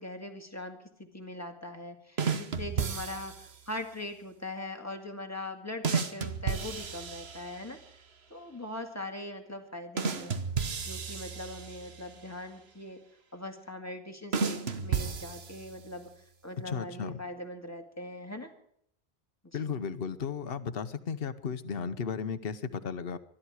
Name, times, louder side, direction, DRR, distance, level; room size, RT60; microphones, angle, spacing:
voice 1, 0.0-7.8 8.3-10.4 10.8-13.0 13.3-16.1 16.4-18.5 19.4-19.8, left 1 dB, 15° left, 4 dB, 2.0 m, -41 dB
sound 1, 2.2-3.6 5.8-7.8 10.0-12.1 14.3-15.9, right 5 dB, 75° right, 1.5 m, -33 dB
voice 2, 16.6-17.2 19.5-23.2, left 6 dB, 65° left, 11 dB, 1.1 m, -35 dB
24.5 x 11.5 x 4.8 m, 0.67 s
omnidirectional pair, 1.1 m